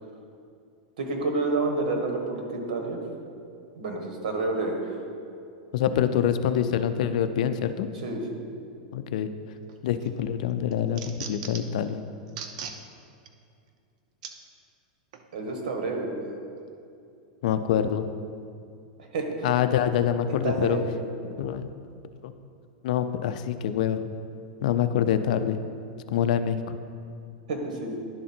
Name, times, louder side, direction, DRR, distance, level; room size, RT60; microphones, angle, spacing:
voice 1, 1.0-3.0 3.7-5.0 8.0-8.4 15.3-16.4 19.0-19.5 20.3-21.0 27.5-28.0, right 3 dB, 75° right, 2 dB, 1.4 m, -29 dB
voice 2, 5.7-7.9 8.9-9.3 9.8-12.0 17.4-18.1 19.4-20.8 21.4-21.7 22.2-22.3 22.8-24.0 24.6-25.6 26.1-26.8, left 9 dB, 65° left, 10 dB, 0.4 m, -25 dB
sound 1, 9.7-10.1 10.5-11.8 12.3-12.8 13.3-13.4 14.2-14.3 15.1-15.3, right 7 dB, 60° right, 0.6 m, -39 dB
11.0 x 3.7 x 4.4 m, 2.4 s
supercardioid pair, 150°, 4 cm